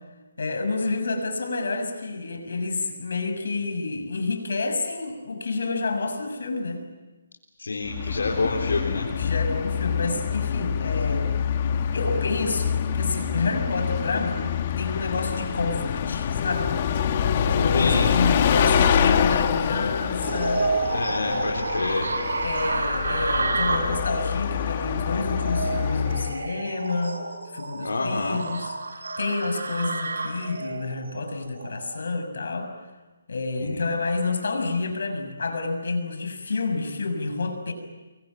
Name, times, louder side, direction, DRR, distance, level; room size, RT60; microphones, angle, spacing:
voice 1, 0.4-6.8 9.1-11.3 11.9-14.5 14.8-16.8 17.4-20.6 21.2-21.6 22.4-27.2 27.5-28.8 29.2-32.7 33.3-37.7, left 3 dB, 70° left, 7 dB, 6.4 m, -29 dB
voice 2, 7.6-9.1 17.7-18.2 20.9-22.2 27.8-28.4 33.6-33.9, left 3 dB, 85° left, -1 dB, 4.0 m, -27 dB
Bus, 7.8-26.4, left 8 dB, 35° left, 1.5 m, -26 dB
sound 1, 20.2-32.0, right 3 dB, 80° right, 7.0 m, -30 dB
29.0 x 23.5 x 7.6 m, 1.2 s
hypercardioid pair, 165°, 0 cm